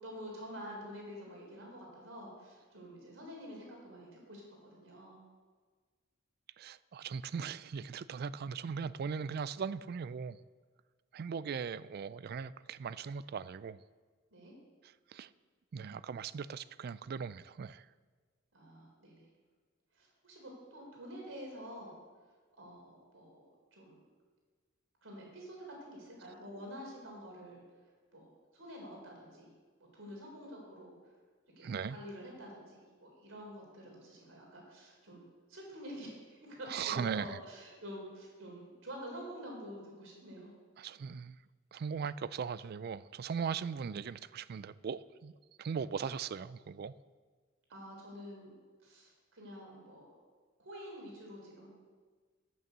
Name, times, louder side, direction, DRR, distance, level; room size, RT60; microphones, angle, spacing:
voice 1, 0.0-5.2 14.3-14.5 18.5-19.2 20.0-22.0 22.6-23.4 23.7-24.0 25.0-27.6 28.1-29.5 29.9-31.0 31.6-40.5 47.7-48.5 48.8-50.2 50.6-51.7, equal, 75° right, 3.6 m, -48 dB
voice 2, 6.6-10.4 11.1-13.8 14.8-15.3 15.7-17.9 31.6-32.0 36.7-37.4 40.8-41.4 41.7-46.9, right 6 dB, 50° right, 0.3 m, -39 dB
9.5 x 8.7 x 6.7 m
head